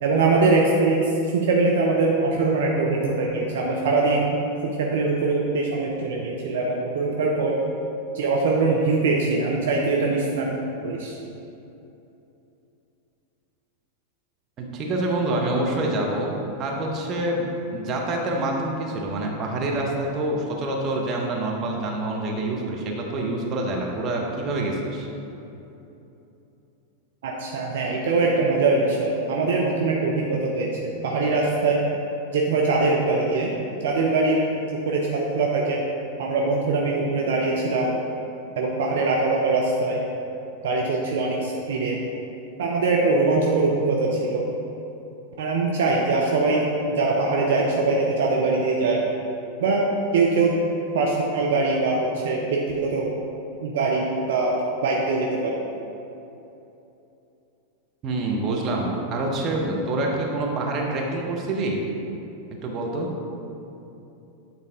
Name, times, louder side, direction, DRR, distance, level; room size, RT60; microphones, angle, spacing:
voice 1, 0.0-4.4 4.6-7.6 8.1-10.5 10.8-11.1 27.2-31.8 32.3-33.5 33.8-34.4 34.7-35.8 36.2-37.9 38.6-40.0 40.6-42.0 42.6-44.4 45.4-49.0 49.6-49.9 50.1-50.6 50.9-53.1 53.6-55.6, right 3 dB, 60° right, -2 dB, 0.6 m, -22 dB
voice 2, 14.6-17.4 17.7-25.1 58.0-61.8 62.6-63.1, right 2 dB, 30° right, -1 dB, 1.0 m, -26 dB
8.6 x 4.0 x 3.6 m, 2.9 s
figure-of-eight pair, 90°, 0 cm